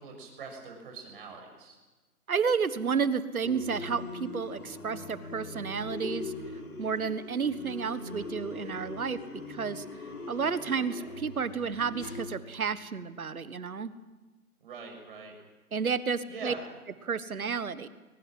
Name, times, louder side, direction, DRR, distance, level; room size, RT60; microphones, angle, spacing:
voice 1, 0.0-1.7 10.7-10.8 14.6-15.3 16.3-16.6, right 4 dB, 35° right, 2 dB, 6.7 m, -43 dB
voice 2, 2.3-6.3 6.8-9.2 9.5-9.8 10.3-13.9 15.7-16.5 17.0-17.9, right 6 dB, 70° right, 14 dB, 1.6 m, -31 dB
sound 1, 3.4-12.3, left 3 dB, 75° left, 6.4 m, -41 dB
22.5 x 21.0 x 7.5 m, 1.2 s
hypercardioid pair, 160°, 45 cm